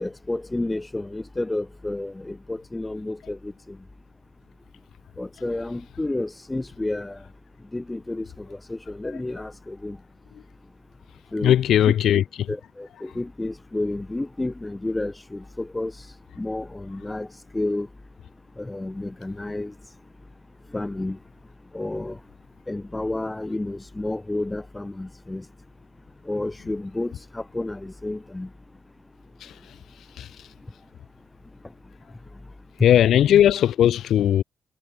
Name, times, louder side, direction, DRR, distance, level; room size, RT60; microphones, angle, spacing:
voice 1, 0.0-3.8 5.2-7.2 7.7-10.0 11.3-11.6 11.9-12.0 12.5-15.9 16.4-17.3 17.5-17.9 18.6-19.7 20.7-21.2 21.7-22.2 22.7-25.4 26.3-28.5, left 2 dB, 20° left, 2.3 m, -30 dB
voice 2, 11.4-12.2 29.4-29.5 30.2-30.3 32.8-34.4, left 11 dB, 80° left, 2.5 m, -18 dB
cardioid pair, 65°, 0 cm